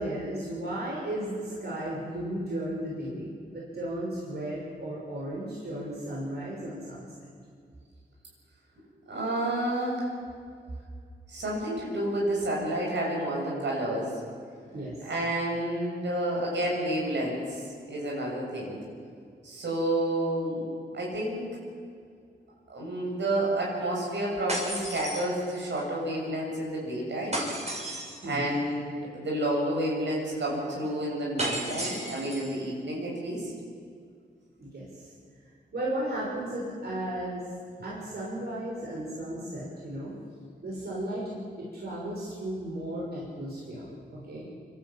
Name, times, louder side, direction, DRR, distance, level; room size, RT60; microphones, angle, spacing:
voice 1, 0.0-7.0 14.7-14.9 28.2-28.5 34.6-35.1 35.7-37.4 37.8-40.1 40.6-44.4, right 1 dB, 65° right, -5 dB, 6.1 m, -35 dB
voice 2, 9.1-10.1 11.3-14.1 15.0-17.6 17.9-18.8 19.4-20.7 20.9-21.4 22.7-27.4 28.2-33.5, right 1 dB, 80° right, -3 dB, 7.5 m, -30 dB
sound 1, 24.5-25.8 27.3-28.3 31.4-32.6, right 1 dB, 35° right, 6.5 m, -34 dB
25.5 x 13.0 x 8.8 m, 2.2 s
cardioid pair, 70°, 18 cm